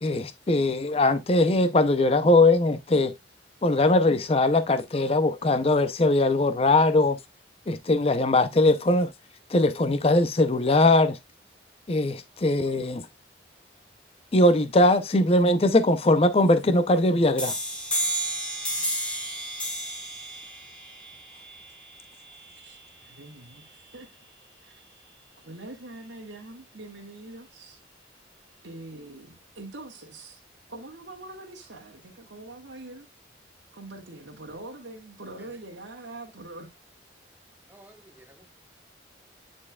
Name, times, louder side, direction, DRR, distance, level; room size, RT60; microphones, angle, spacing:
voice 1, 0.0-3.1 3.6-7.2 7.7-9.1 9.5-11.2 11.9-13.1 14.3-17.6, left 2 dB, 30° left, 0.5 m, -21 dB
sound 1, 17.4-22.8, right 1 dB, 5° left, 1.6 m, -32 dB
voice 2, 22.6-24.1 24.6-24.8 25.4-27.8 28.6-30.4 30.7-33.1 33.7-36.7, right 2 dB, 70° right, 1.9 m, -43 dB
voice 3, 37.7-38.5, right 1 dB, 10° right, 1.2 m, -53 dB
9.6 x 4.5 x 2.3 m
head